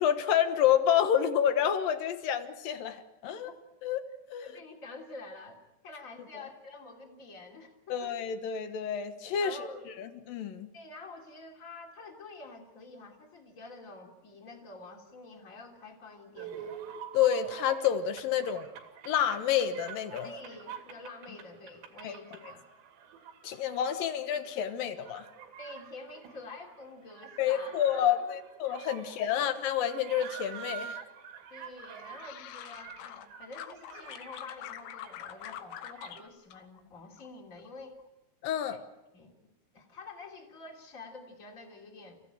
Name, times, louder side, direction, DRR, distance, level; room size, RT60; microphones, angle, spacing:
voice 1, 0.0-3.5 3.8-4.0 4.3-4.5 7.9-9.6 10.0-10.7 17.1-18.7 19.0-20.3 22.0-22.1 23.4-25.3 27.4-31.0 38.4-38.8, left 9 dB, 65° left, 9 dB, 2.6 m, -29 dB
voice 2, 4.4-8.2 9.4-9.8 10.7-16.8 20.2-22.6 25.6-28.4 29.0-29.5 31.5-38.0 38.7-38.8 39.1-39.5 39.7-42.2, left 3 dB, 20° left, 1 dB, 2.9 m, -48 dB
sound 1, 16.4-36.3, right 8 dB, 80° right, 4.6 m, -47 dB
sound 2, 31.8-33.3 33.5-36.2 36.5-37.3 37.6-38.0, left 11 dB, 85° left, 3.4 m, -45 dB
29.5 x 16.0 x 8.9 m, 1.0 s
omnidirectional pair, 5.0 m